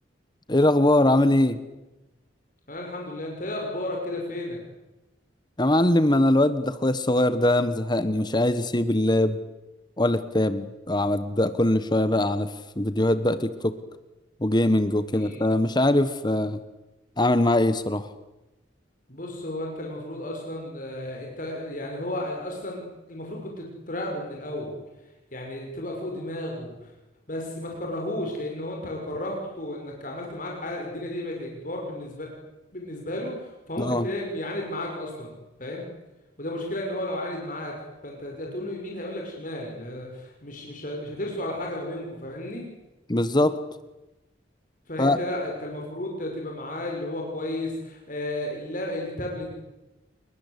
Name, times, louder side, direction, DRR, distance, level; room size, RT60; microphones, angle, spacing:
voice 1, 0.5-1.6 5.6-9.4 10.0-13.8 14.4-16.6 17.2-18.1 33.8-34.1 43.1-43.6 45.0-45.2, left 1 dB, 25° left, 12 dB, 1.2 m, -22 dB
voice 2, 2.7-4.6 15.1-15.5 19.1-22.8 23.1-24.7 25.3-26.9 27.3-32.3 32.7-35.3 35.6-35.9 36.4-37.7 38.0-42.6 44.9-49.5, left 1 dB, 45° left, 0 dB, 6.2 m, -33 dB
29.5 x 23.0 x 8.3 m, 1.0 s
head